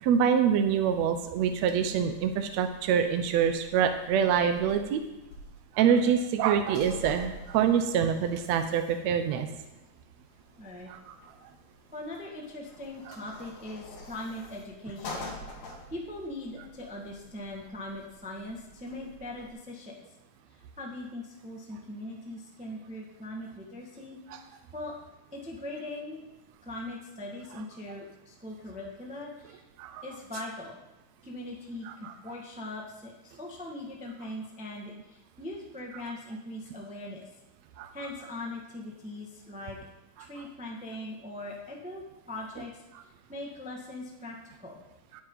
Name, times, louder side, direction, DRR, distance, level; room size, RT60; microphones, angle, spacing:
voice 1, 0.0-5.0 5.7-9.5 10.9-11.1 13.1-13.2 24.3-24.4 29.8-30.0 31.9-32.1 37.8-37.9, right 8 dB, 75° right, 7 dB, 1.6 m, -25 dB
sound 1, 0.7-19.5, left 2 dB, 80° left, 4.0 m, -48 dB
voice 2, 10.6-10.9 11.9-15.3 15.9-20.0 20.5-24.2 24.7-24.9 25.3-26.2 26.6-29.6 30.0-30.8 31.2-37.3 37.9-39.8 40.2-42.8 43.3-44.8, left 1 dB, 5° right, -1 dB, 0.9 m, -40 dB
18.0 x 9.4 x 4.1 m, 1.0 s
omnidirectional pair, 4.0 m